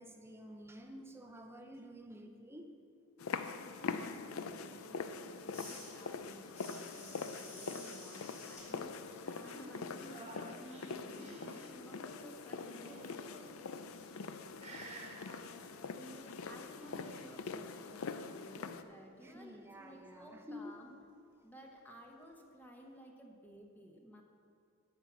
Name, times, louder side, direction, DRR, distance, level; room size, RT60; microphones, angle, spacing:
voice 1, 0.0-2.7 19.2-20.8, equal, 10° right, 4 dB, 0.6 m, -50 dB
sound 1, 3.2-18.8, left 5 dB, 75° left, 0.5 m, -44 dB
voice 2, 3.8-13.6 14.5-20.9 21.4-24.2, equal, 10° left, 1 dB, 0.9 m, -55 dB
sound 2, 5.5-11.0 11.3-16.2, left 2 dB, 30° left, 2.4 m, -56 dB
sound 3, 10.0-11.7 12.5-13.4 14.0-14.3 14.6-15.2 16.5-17.3, right 2 dB, 30° right, 1.3 m, -52 dB
10.5 x 5.8 x 7.1 m, 2.4 s
head